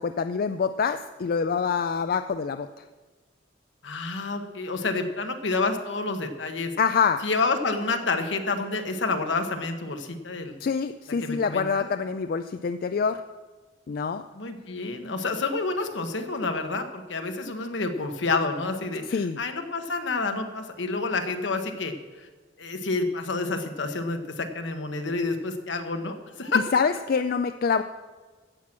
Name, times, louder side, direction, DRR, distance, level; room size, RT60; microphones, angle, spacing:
voice 1, 0.0-2.7 6.8-7.2 10.6-13.2 13.9-14.2 19.1-19.4 26.7-27.8, left 5 dB, 50° left, 9 dB, 0.4 m, -25 dB
voice 2, 3.8-6.7 7.2-10.5 11.2-11.9 14.3-22.3 22.6-26.6, left 3 dB, 75° left, 6 dB, 1.3 m, -29 dB
15.5 x 6.1 x 7.5 m, 1.4 s
head